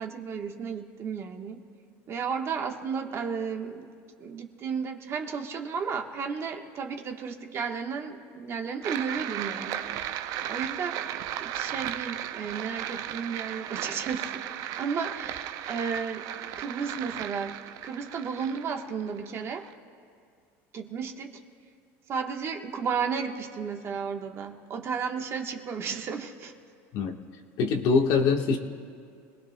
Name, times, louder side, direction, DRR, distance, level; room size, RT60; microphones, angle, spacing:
voice 1, 0.0-1.6 2.1-3.9 4.2-11.0 11.4-14.4 14.8-16.2 16.6-19.7 20.7-21.4 22.1-26.5, right 6 dB, 35° right, 3 dB, 1.1 m, -33 dB
sound 1, 8.8-19.7, right 11 dB, 55° right, 0.5 m, -36 dB
voice 2, 27.6-28.6, left 5 dB, 60° left, 2 dB, 1.3 m, -23 dB
29.0 x 19.0 x 2.2 m, 2.3 s
supercardioid pair, 125°, 7 cm